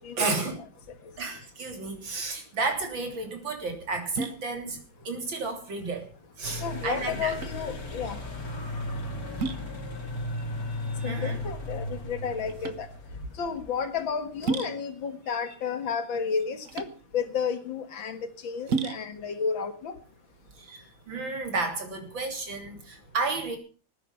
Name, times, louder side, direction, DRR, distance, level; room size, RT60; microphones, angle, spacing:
voice 1, 0.2-0.6 1.2-4.8 5.0-7.3 10.3-11.4 15.3-15.5 20.6-23.6, right 3 dB, 75° right, 4 dB, 3.9 m, -32 dB
sound 1, 2.6-21.1, right 4 dB, 50° right, 1.3 m, -37 dB
sound 2, 6.4-14.0, left 1 dB, 50° left, 3.1 m, -35 dB
voice 2, 6.6-8.2 11.0-12.9 13.4-16.9 17.1-19.9, left 6 dB, 80° left, 8 dB, 2.5 m, -32 dB
19.5 x 9.9 x 5.6 m, 0.38 s
omnidirectional pair, 2.1 m